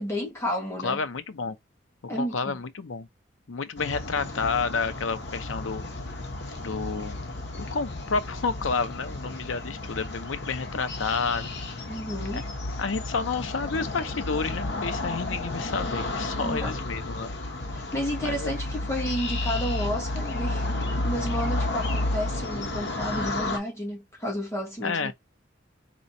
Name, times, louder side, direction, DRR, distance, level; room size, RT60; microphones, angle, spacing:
voice 1, 0.0-1.0 2.1-2.6 11.9-12.5 16.4-16.8 17.7-20.6 21.0-25.1, equal, 15° left, 1.6 m, -31 dB
voice 2, 0.8-1.6 2.0-3.1 3.5-5.8 6.6-7.2 7.7-11.8 12.3-12.4 12.8-17.3 18.2-18.5 24.8-25.1, left 4 dB, 90° left, 0.7 m, -30 dB
sound 1, 3.8-23.6, left 2 dB, 60° left, 1.1 m, -32 dB
4.2 x 3.0 x 2.6 m
head